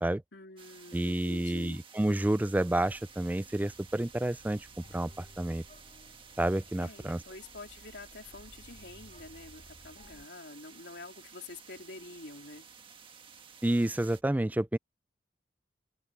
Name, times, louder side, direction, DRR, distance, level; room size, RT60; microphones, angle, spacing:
voice 1, 0.3-1.8 6.8-12.7, left 2 dB, 70° left, 3.8 m, -47 dB
sound 1, 0.6-14.2, right 6 dB, 30° right, 1.6 m, -54 dB
voice 2, 0.9-4.7 4.9-5.6 6.4-7.2 13.6-14.8, right 1 dB, 10° right, 0.3 m, -29 dB
sound 2, 2.8-10.3, left 1 dB, 45° left, 2.4 m, -57 dB
open air
head